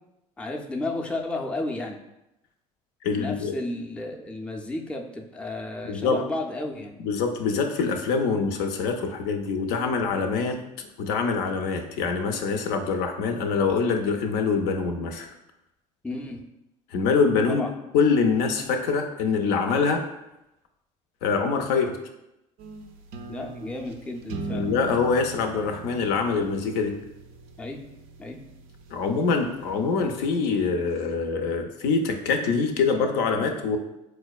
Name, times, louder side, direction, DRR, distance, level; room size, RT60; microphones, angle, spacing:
voice 1, 0.4-2.0 3.2-7.0 16.0-16.4 17.5-17.7 23.3-24.7 27.6-27.8 28.2-28.4, left 2 dB, 5° left, 1 dB, 0.4 m, -32 dB
voice 2, 3.0-3.5 5.8-6.2 7.0-15.3 16.9-17.7 17.9-20.0 21.2-22.0 24.5-26.9 28.9-33.8, left 5 dB, 65° left, 5 dB, 0.4 m, -24 dB
sound 1, 22.6-30.7, right 5 dB, 60° right, 0.4 m, -41 dB
4.2 x 2.1 x 2.3 m, 0.89 s
hypercardioid pair, 70°, 18 cm